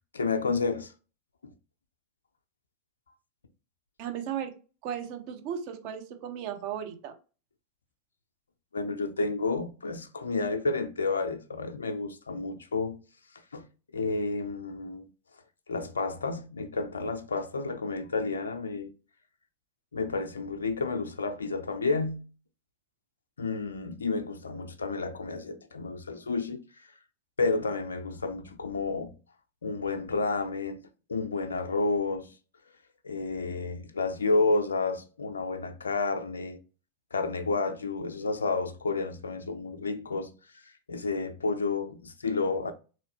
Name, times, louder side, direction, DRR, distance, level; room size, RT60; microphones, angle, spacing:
voice 1, 0.1-0.9 1.4-1.5 8.7-13.0 13.5-13.7 13.9-15.1 15.7-18.9 19.9-22.3 23.4-26.6 27.4-29.1 29.6-32.3 33.0-36.6 37.1-40.3 40.9-42.7, left 3 dB, 70° left, 0.4 m, -30 dB
voice 2, 4.0-4.5 4.8-7.1, right 9 dB, 45° right, 0.6 m, -35 dB
3.9 x 3.0 x 2.8 m
figure-of-eight pair, 90°, 0 cm